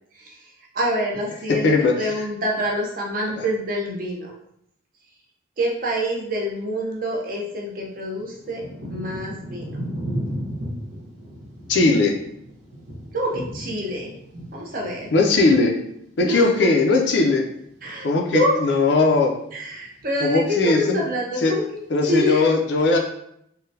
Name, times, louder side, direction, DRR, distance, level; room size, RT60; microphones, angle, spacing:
voice 1, 0.1-4.3 5.6-9.8 13.1-14.1 14.5-15.1 16.2-16.7 17.8-18.6 19.5-21.6 22.0-22.4, equal, 45° right, -1 dB, 0.6 m, -26 dB
Thunder / Rain, 7.1-7.2 7.8-17.4 17.6-18.5 19.1-19.4 19.7-20.5 21.1-21.2, equal, 80° right, 1.0 m, -35 dB
voice 2, 11.7-12.1 15.1-15.7 16.2-17.4 18.0-19.3 20.2-21.0 21.4-21.5 21.9-23.0, left 3 dB, 60° left, 1 dB, 0.4 m, -18 dB
3.7 x 2.1 x 2.6 m, 0.73 s
head